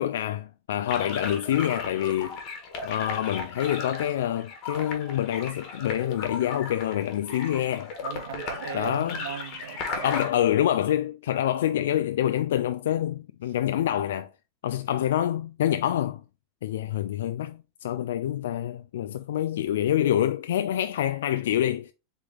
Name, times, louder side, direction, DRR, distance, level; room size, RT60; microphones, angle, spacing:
voice 1, 0.0-2.4 2.8-7.9 8.7-9.2 10.0-14.3 14.6-16.2 16.6-21.9, left 11 dB, 85° left, 0.3 m, -26 dB
sound 1, 0.9-10.3, left 4 dB, 45° left, 1.4 m, -36 dB
voice 2, 8.0-10.2, right 8 dB, 85° right, 0.4 m, -38 dB
3.9 x 3.4 x 3.5 m
supercardioid pair, 130°, 0 cm